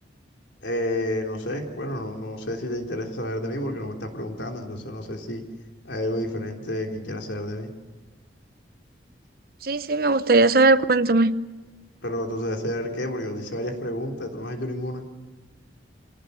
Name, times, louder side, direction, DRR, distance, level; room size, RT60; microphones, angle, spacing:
voice 1, 0.6-5.4 5.8-7.7 12.0-15.0, left 1 dB, 80° left, 3.4 m, -30 dB
voice 2, 9.6-11.3, right 3 dB, 50° right, 0.7 m, -19 dB
27.0 x 18.5 x 6.9 m
head